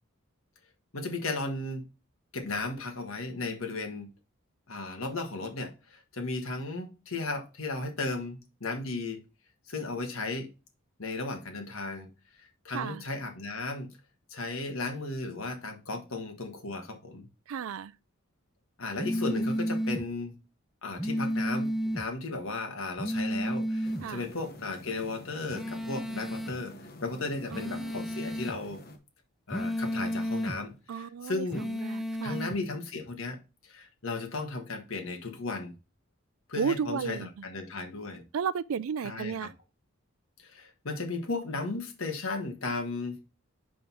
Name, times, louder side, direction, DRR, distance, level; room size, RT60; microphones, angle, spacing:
voice 1, 0.9-1.9 2.3-4.1 4.7-9.2 9.7-10.5 11.0-12.1 12.4-13.9 14.3-17.3 18.8-20.3 20.8-28.8 29.5-31.7 32.2-33.4 33.6-35.7 36.5-38.2 39.0-39.5 40.4-43.2, left 3 dB, 65° left, 1.5 m, -35 dB
voice 2, 12.7-13.0 17.5-17.9 24.0-24.3 27.5-27.9 30.9-32.5 36.6-37.3 38.3-39.5, right 6 dB, 70° right, 0.4 m, -33 dB
sound 1, 19.0-20.0 21.0-22.0 23.0-24.0 25.5-26.6 27.5-28.6 29.5-30.6 31.5-32.6, equal, ahead, 0.4 m, -32 dB
sound 2, 23.8-29.0, left 1 dB, 45° left, 1.0 m, -48 dB
5.5 x 5.2 x 4.4 m
head